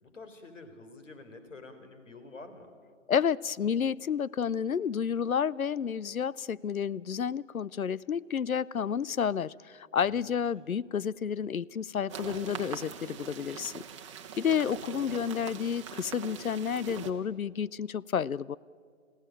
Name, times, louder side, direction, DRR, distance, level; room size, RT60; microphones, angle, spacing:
voice 1, 0.0-2.7 10.0-10.3, left 3 dB, 65° left, 9 dB, 3.9 m, -48 dB
voice 2, 3.1-13.8 14.4-18.6, left 7 dB, 85° left, 23 dB, 0.6 m, -30 dB
sound 1, 12.1-17.1, right 8 dB, 20° right, 1.2 m, -42 dB
27.5 x 16.5 x 8.9 m, 2.2 s
figure-of-eight pair, 145°, 41 cm